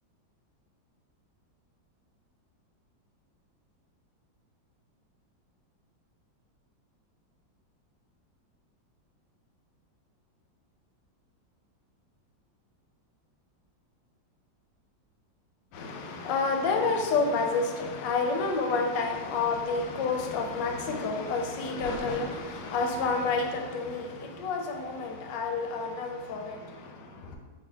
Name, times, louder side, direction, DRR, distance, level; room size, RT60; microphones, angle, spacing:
voice 1, 15.7-27.4, left 4 dB, 75° left, 3 dB, 1.2 m, -29 dB
4.1 x 2.8 x 2.7 m, 1.4 s
omnidirectional pair, 2.1 m